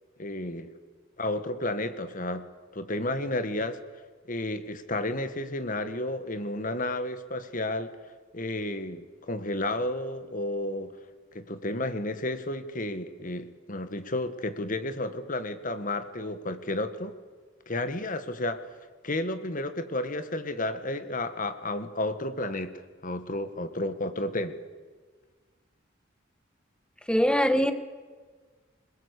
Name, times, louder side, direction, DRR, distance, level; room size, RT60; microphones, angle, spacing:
voice 1, 0.2-0.7 1.2-2.4 2.7-3.8 4.3-8.0 8.3-10.9 11.3-17.2 17.7-18.6 19.0-22.7 23.0-24.6, left 1 dB, 45° left, 10 dB, 1.6 m, -32 dB
voice 2, 27.1-27.7, equal, 5° left, 9 dB, 1.2 m, -22 dB
23.0 x 21.0 x 8.3 m, 1.4 s
head